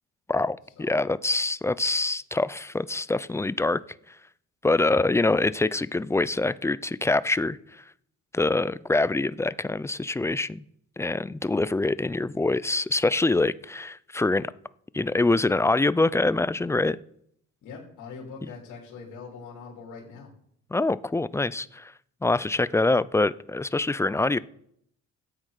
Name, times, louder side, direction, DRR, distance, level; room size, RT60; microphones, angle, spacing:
voice 1, 0.3-3.8 4.6-7.6 8.3-10.6 11.0-14.5 14.9-17.0 20.7-21.9 22.2-24.4, left 2 dB, 10° left, 17 dB, 0.4 m, -25 dB
voice 2, 17.6-20.3, left 5 dB, 85° left, -2 dB, 3.1 m, -42 dB
13.5 x 8.6 x 4.9 m, 0.71 s
cardioid pair, 90°, 30 cm